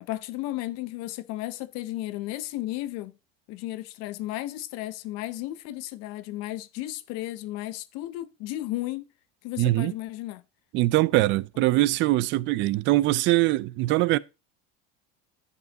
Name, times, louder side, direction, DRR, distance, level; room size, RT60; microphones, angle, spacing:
voice 1, 0.1-3.1 3.5-9.0 9.4-10.4 11.7-11.8, left 16 dB, 60° left, 0.7 m, -34 dB
voice 2, 9.6-9.9 10.7-14.2, right 18 dB, 40° right, 0.4 m, -22 dB
11.0 x 5.4 x 3.9 m
cardioid pair, 160°, 30 cm